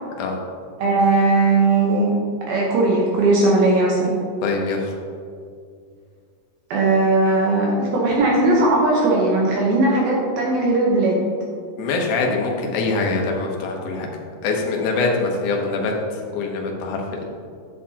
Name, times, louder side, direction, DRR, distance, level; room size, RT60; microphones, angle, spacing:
voice 1, 0.8-2.1 2.5-4.1 6.7-11.2, right 2 dB, 70° right, -3 dB, 2.7 m, -18 dB
voice 2, 4.4-5.0 11.8-14.1 14.4-17.4, left 3 dB, 75° left, 0 dB, 1.8 m, -24 dB
9.8 x 8.6 x 2.8 m, 2.2 s
omnidirectional pair, 4.8 m